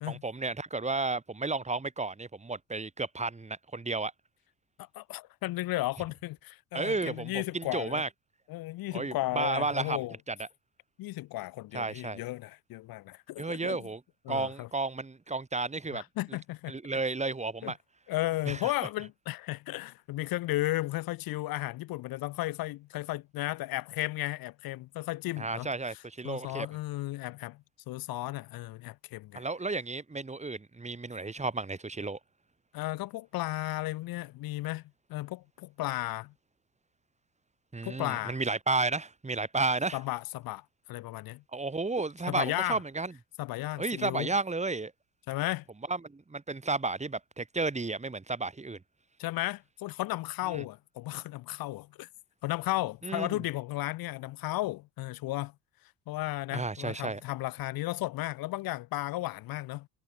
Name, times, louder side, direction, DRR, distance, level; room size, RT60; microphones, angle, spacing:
voice 1, 0.0-4.1 6.7-8.1 8.9-10.0 10.3-10.5 11.7-12.2 13.4-14.0 14.3-16.0 16.7-17.8 18.5-18.7 25.4-26.7 29.3-32.2 37.7-40.0 41.5-43.1 43.8-44.9 45.9-48.8 50.5-50.6 53.0-53.4 56.5-57.2, right 3 dB, 15° right, 3.2 m, -32 dB
voice 2, 4.8-8.0 8.5-10.2 11.0-13.9 14.2-14.7 15.9-16.7 17.6-17.7 18.1-29.4 32.7-34.8 35.1-36.3 37.8-38.4 39.9-41.4 42.3-42.8 43.4-44.3 45.3-45.6 49.2-52.1 52.4-55.5 56.1-59.9, left 18 dB, 55° left, 1.6 m, -34 dB
hypercardioid pair, 65°, 42 cm